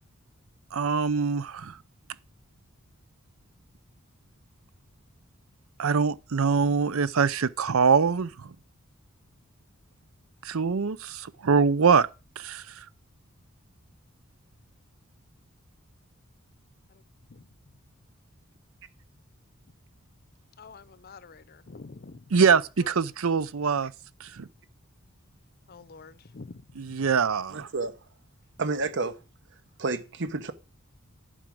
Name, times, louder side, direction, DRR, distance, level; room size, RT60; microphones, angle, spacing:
voice 1, 0.7-1.8 5.8-8.5 10.4-12.1 12.4-12.6 22.3-23.9 24.2-24.5 26.8-27.7, right 5 dB, 75° right, 0.6 m, -24 dB
voice 2, 20.6-22.3 22.8-22.9 25.7-27.0, left 4 dB, 45° left, 0.6 m, -47 dB
voice 3, 27.5-27.9 28.6-29.2 29.8-30.5, right 3 dB, 55° right, 1.0 m, -30 dB
11.0 x 5.0 x 7.6 m
head